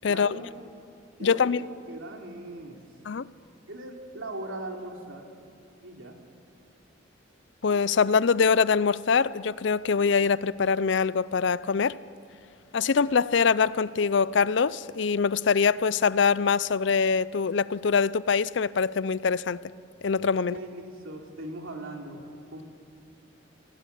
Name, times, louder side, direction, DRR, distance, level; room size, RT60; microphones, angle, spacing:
voice 1, 0.0-0.6 1.2-2.8 3.7-5.3 5.8-6.2 20.4-22.2 22.5-22.6, right 1 dB, 90° right, 3.1 m, -39 dB
voice 2, 1.2-1.6 3.1-3.3 7.6-12.0 12.7-19.6 20.0-20.5, left 5 dB, 65° left, 0.5 m, -23 dB
27.5 x 17.5 x 8.4 m
head